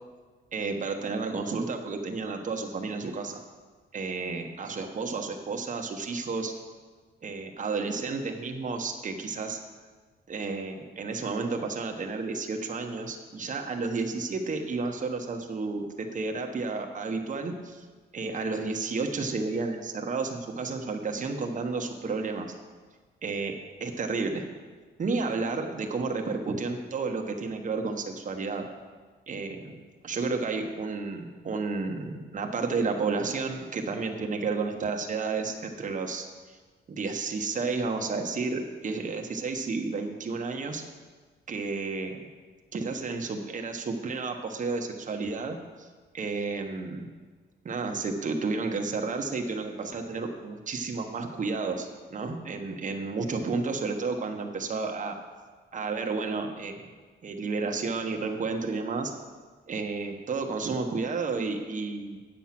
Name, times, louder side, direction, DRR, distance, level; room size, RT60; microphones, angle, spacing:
voice 1, 0.5-3.4 3.9-6.5 7.2-9.6 10.3-17.8 18.1-22.5 23.2-24.4 25.0-28.6 29.3-29.8 30.0-36.6 36.9-40.8 41.5-42.3 42.7-45.9 46.1-47.1 47.6-55.1 55.7-56.8 57.2-59.1 59.7-62.2, right 4 dB, 40° right, 3 dB, 1.2 m, -31 dB
9.1 x 7.5 x 5.9 m, 1.4 s
cardioid pair, 90°, 20 cm